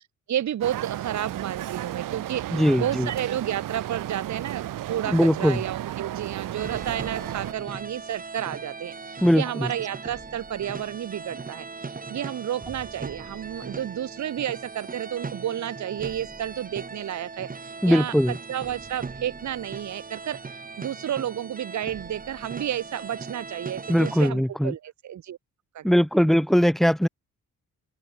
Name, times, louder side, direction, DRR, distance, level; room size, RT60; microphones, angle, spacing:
voice 1, 0.3-25.4 25.7-26.0, right 11 dB, 60° right, 1.6 m, -31 dB
sound 1, 0.6-7.5, right 13 dB, 85° right, 2.0 m, -33 dB
voice 2, 2.5-3.1 5.1-5.6 9.2-9.7 17.8-18.4 23.9-24.7 25.8-27.1, equal, ahead, 0.3 m, -20 dB
sound 2, 6.6-24.3, right 4 dB, 25° right, 4.1 m, -39 dB
open air
cardioid pair, 125°, 31 cm